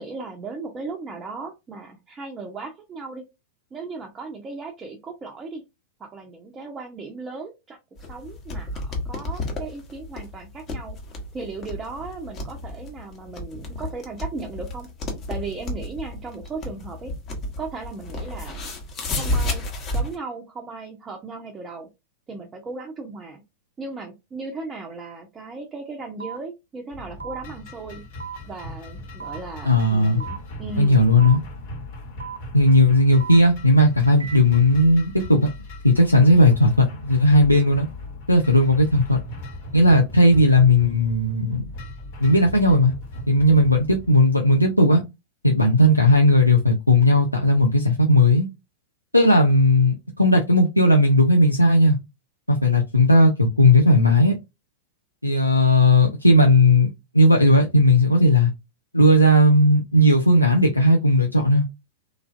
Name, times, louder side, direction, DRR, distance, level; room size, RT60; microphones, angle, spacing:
voice 1, 0.0-3.2 3.7-5.6 6.0-11.0 11.3-14.9 15.3-17.1 17.6-18.6 19.1-19.7 19.9-21.9 22.3-23.4 23.8-28.0 28.5-31.0, right 3 dB, 20° right, 0.6 m, -36 dB
sound 1, 8.0-20.2, left 1 dB, 30° left, 0.9 m, -31 dB
sound 2, 26.2-26.4 27.2-27.4 28.2-28.4 29.2-29.4 30.2-30.4 31.2-31.4 32.2-32.4 33.2-33.4 34.2-34.4, right 7 dB, 75° right, 0.4 m, -35 dB
sound 3, 26.9-44.1, left 1 dB, 55° left, 1.1 m, -38 dB
voice 2, 29.7-30.2 30.8-31.4 32.5-35.4 35.8-37.9 38.3-39.2 39.7-41.6 42.2-42.9 43.3-45.0 45.4-48.5 49.1-52.0 52.5-54.4 55.2-56.9 57.1-58.5 58.9-61.6, left 1 dB, 90° left, 0.4 m, -16 dB
3.1 x 2.4 x 2.4 m
figure-of-eight pair, 90°, 0 cm